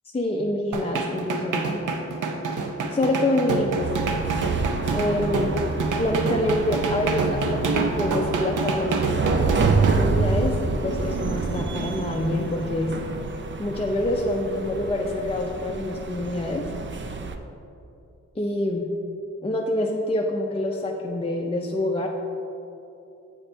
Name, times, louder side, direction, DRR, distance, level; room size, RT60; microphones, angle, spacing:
voice 1, 0.1-1.7 2.9-3.9 4.9-5.6 6.0-9.0 9.8-13.0 13.6-16.7 18.4-18.9 19.4-22.1, left 1 dB, 20° left, -1 dB, 0.5 m, -26 dB
sound 1, 0.7-10.0, right 3 dB, 85° right, 0.6 m, -27 dB
sound 2, 3.8-17.4, right 4 dB, 40° right, 0.5 m, -28 dB
8.1 x 4.2 x 4.4 m, 2.8 s
wide cardioid pair, 90°, 30 cm